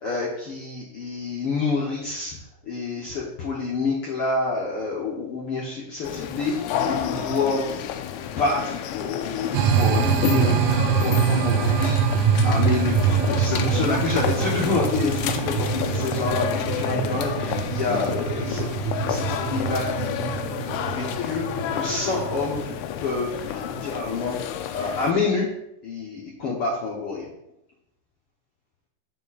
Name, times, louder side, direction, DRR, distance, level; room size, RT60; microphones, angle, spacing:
voice 1, 0.0-2.4 2.6-6.5 6.8-7.8 8.4-10.6 11.0-13.0 13.2-21.5 21.7-22.7 23.0-24.4 24.7-25.5 25.8-27.3, left 4 dB, 60° left, -4 dB, 1.5 m, -28 dB
sound 1, 6.0-25.1, left 9 dB, 90° left, 1.7 m, -30 dB
sound 2, 9.5-22.8, right 6 dB, 85° right, 1.6 m, -24 dB
7.2 x 7.0 x 4.2 m, 0.81 s
omnidirectional pair, 4.1 m